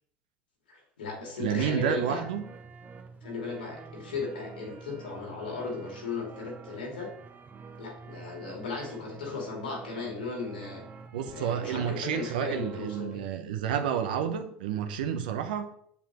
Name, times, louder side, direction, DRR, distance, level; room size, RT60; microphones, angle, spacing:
voice 1, 0.7-2.3 3.2-7.1 7.8-10.8 11.3-13.2, left 4 dB, 85° left, 2.4 m, -36 dB
voice 2, 1.4-2.4 11.1-15.7, right 8 dB, 75° right, 0.8 m, -30 dB
sound 1, 1.5-13.3, right 4 dB, 30° right, 0.8 m, -47 dB
7.0 x 7.0 x 3.0 m
hypercardioid pair, 80°, 5 cm